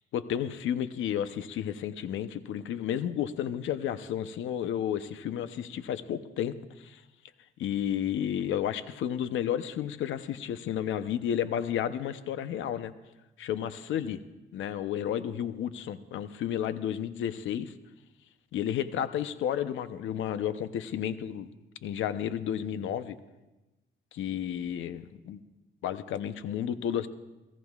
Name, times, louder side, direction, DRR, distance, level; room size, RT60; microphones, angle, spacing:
voice 1, 0.1-7.0 7.6-12.9 13.4-14.2 14.5-17.7 18.5-21.5 21.8-23.2 24.1-25.4 25.8-27.1, left 10 dB, 80° left, 12 dB, 0.8 m, -32 dB
29.0 x 16.5 x 2.4 m, 1.1 s
cardioid pair, 90°, 20 cm